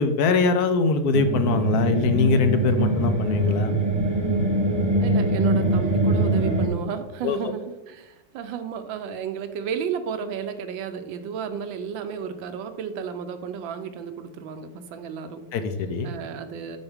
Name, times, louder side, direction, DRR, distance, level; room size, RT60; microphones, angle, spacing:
voice 1, 0.0-3.7 7.2-7.4 15.5-16.1, left 4 dB, 65° left, 9 dB, 1.0 m, -22 dB
sound 1, 1.1-6.7, right 2 dB, 35° right, 0.4 m, -23 dB
voice 2, 5.0-15.4 16.0-16.8, right 7 dB, 80° right, 9 dB, 1.4 m, -33 dB
8.0 x 6.2 x 3.5 m, 1.0 s
omnidirectional pair, 2.1 m